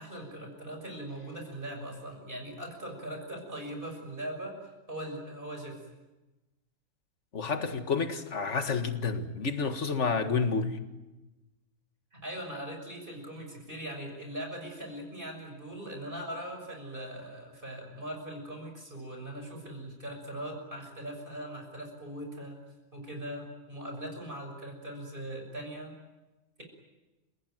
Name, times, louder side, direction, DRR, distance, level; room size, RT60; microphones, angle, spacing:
voice 1, 0.0-4.6 4.9-5.8 12.1-22.6 22.9-26.0, right 1 dB, 35° right, 3 dB, 6.7 m, -40 dB
voice 2, 7.3-10.8, left 5 dB, 55° left, 7 dB, 2.1 m, -29 dB
29.5 x 18.0 x 9.3 m, 1.1 s
omnidirectional pair, 1.5 m